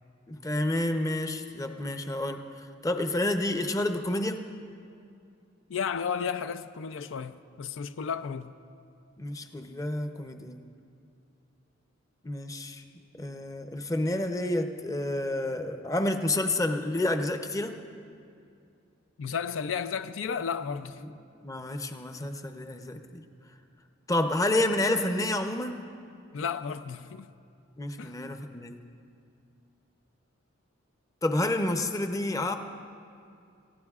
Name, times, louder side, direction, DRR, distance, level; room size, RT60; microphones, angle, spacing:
voice 1, 0.3-4.4 9.2-10.6 12.2-12.8 13.2-17.8 21.0-21.1 21.4-23.0 24.1-25.8 27.8-28.8 31.2-32.6, left 1 dB, 15° left, 0.6 m, -29 dB
voice 2, 5.7-8.5 19.2-21.0 26.3-27.3 28.0-28.1, left 6 dB, 80° left, 0.4 m, -33 dB
28.5 x 15.5 x 2.4 m
head